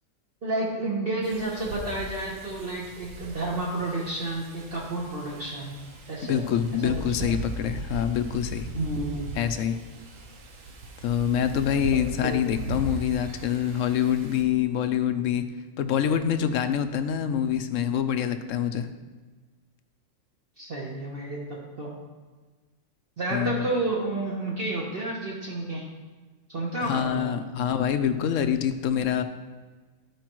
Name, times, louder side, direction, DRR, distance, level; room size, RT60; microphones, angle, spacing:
voice 1, 0.4-5.8 6.1-6.4 6.8-7.3 8.7-9.6 11.9-12.4 20.6-21.9 23.2-25.8 26.5-27.5, right 2 dB, 45° right, -4 dB, 1.2 m, -31 dB
Wind, 1.2-14.4, right 1 dB, 70° right, 1.3 m, -38 dB
voice 2, 6.3-8.7 9.4-9.8 11.0-15.5 15.8-18.9 23.3-23.7 26.8-29.2, left 9 dB, 75° left, 9 dB, 0.9 m, -26 dB
13.5 x 4.9 x 3.0 m, 1.3 s
omnidirectional pair, 1.4 m